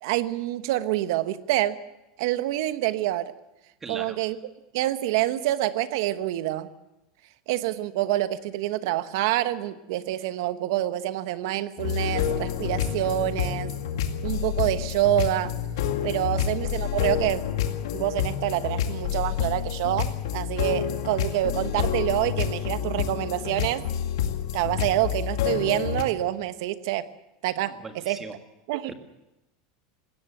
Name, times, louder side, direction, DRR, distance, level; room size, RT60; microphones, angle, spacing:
voice 1, 0.0-1.8 2.2-3.3 3.9-4.4 4.7-6.7 7.5-13.7 14.2-15.5 16.0-17.4 17.9-23.9 24.5-27.1 27.4-28.2 28.7-28.9, right 14 dB, 65° right, 12 dB, 1.1 m, -27 dB
voice 2, 3.8-4.2 16.2-16.5 27.8-28.4 28.9-29.0, right 4 dB, 15° right, 7 dB, 1.8 m, -39 dB
sound 1, 11.8-26.0, left 9 dB, 85° left, 2.1 m, -28 dB
20.5 x 16.5 x 8.0 m, 0.94 s
supercardioid pair, 160°, 2 cm